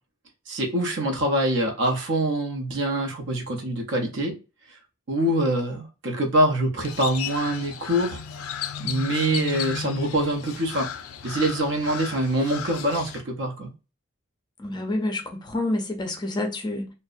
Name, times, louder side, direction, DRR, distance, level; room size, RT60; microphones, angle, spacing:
voice 1, 0.5-4.4 5.1-8.2 8.8-10.9 11.2-13.7, right 1 dB, 60° right, 0.6 m, -25 dB
Crow, 6.8-13.2, left 7 dB, 90° left, 0.3 m, -34 dB
voice 2, 14.6-16.9, left 1 dB, 20° left, 0.4 m, -28 dB
2.6 x 2.0 x 2.4 m
head